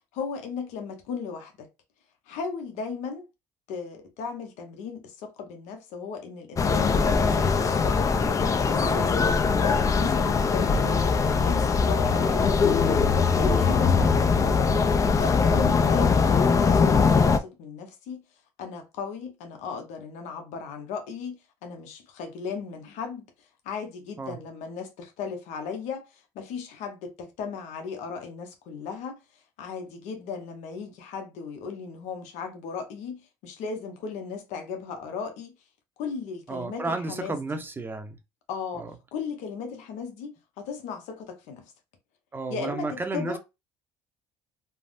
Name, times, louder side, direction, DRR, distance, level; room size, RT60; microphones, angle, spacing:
voice 1, 0.1-1.7 2.3-3.3 3.7-7.8 8.7-9.3 9.6-14.6 15.2-18.2 18.6-23.3 23.6-29.2 29.6-35.5 36.0-37.4 38.5-41.7 42.5-43.4, left 5 dB, 75° left, 0.8 m, -36 dB
sound 1, 6.6-17.4, left 5 dB, 25° left, 0.4 m, -21 dB
voice 2, 36.5-38.2 38.8-38.9 42.3-43.4, right 3 dB, 15° right, 0.6 m, -32 dB
3.4 x 2.0 x 2.5 m
cardioid pair, 100°, 12 cm